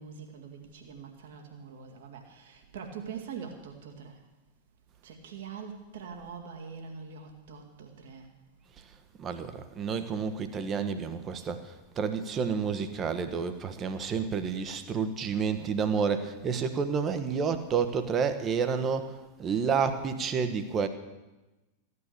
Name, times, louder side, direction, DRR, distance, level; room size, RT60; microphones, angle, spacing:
voice 1, 0.0-4.2 5.0-8.3, right 6 dB, 55° right, 2.0 m, -43 dB
voice 2, 9.2-20.9, right 6 dB, 25° right, 1.2 m, -30 dB
15.0 x 9.7 x 6.7 m
figure-of-eight pair, 90°, 0 cm